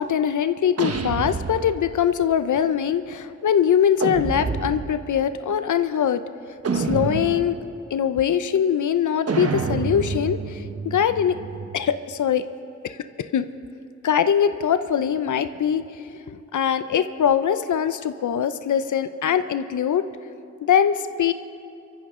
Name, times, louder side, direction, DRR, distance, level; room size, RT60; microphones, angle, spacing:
voice 1, 0.0-6.2 6.7-7.6 7.9-11.4 11.7-12.5 12.8-13.5 14.0-20.1 20.6-21.3, left 8 dB, 85° left, 11 dB, 0.6 m, -22 dB
sound 1, 0.8-2.1 4.0-5.1 6.6-7.7 9.3-12.0, right 4 dB, 55° right, 1.1 m, -28 dB
26.0 x 14.5 x 3.7 m, 2.6 s
wide cardioid pair, 75°, 29 cm